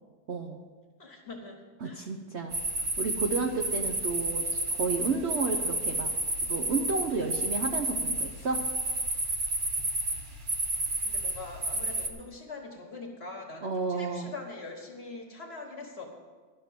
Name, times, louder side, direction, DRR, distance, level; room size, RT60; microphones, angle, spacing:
voice 1, 0.3-0.6 1.8-2.6 3.0-6.1 6.5-8.6 13.6-14.3, right 4 dB, 60° right, 2 dB, 0.7 m, -31 dB
voice 2, 1.0-2.1 11.0-16.1, left 3 dB, 35° left, 2 dB, 1.4 m, -43 dB
sound 1, 2.5-12.1, right 2 dB, 35° right, 0.9 m, -31 dB
12.0 x 6.7 x 7.5 m, 1.5 s
omnidirectional pair, 2.1 m